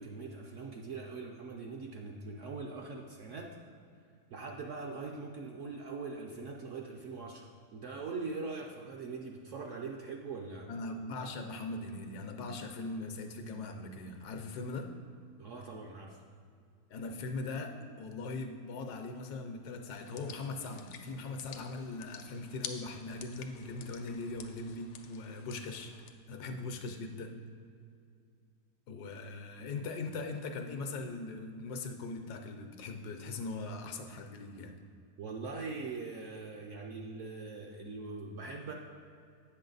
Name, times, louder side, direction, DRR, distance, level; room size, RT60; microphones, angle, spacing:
voice 1, 0.0-3.5 4.3-7.4 7.7-10.7 15.4-16.2 35.2-38.7, right 4 dB, 65° right, 1 dB, 0.7 m, -42 dB
voice 2, 10.7-14.9 16.9-25.9 26.3-27.4 28.9-34.8, left 3 dB, 75° left, 5 dB, 1.2 m, -40 dB
sound 1, 19.9-26.1, left 7 dB, 90° left, 1.2 m, -50 dB
8.5 x 6.5 x 3.9 m, 2.4 s
omnidirectional pair, 1.8 m